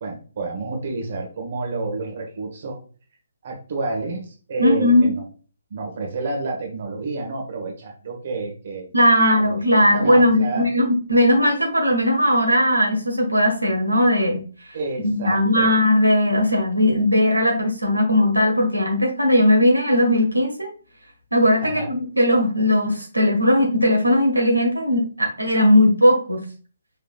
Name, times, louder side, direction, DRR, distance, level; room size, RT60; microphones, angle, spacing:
voice 1, 0.0-2.8 3.4-5.3 5.7-8.9 9.4-10.7 14.7-15.7 21.6-21.9, right 3 dB, 45° right, 1 dB, 1.5 m, -29 dB
voice 2, 4.6-5.1 8.9-14.4 15.0-20.7 21.3-26.4, left 1 dB, 85° right, 1 dB, 1.4 m, -18 dB
5.6 x 3.7 x 2.4 m, 0.39 s
figure-of-eight pair, 135°, 0 cm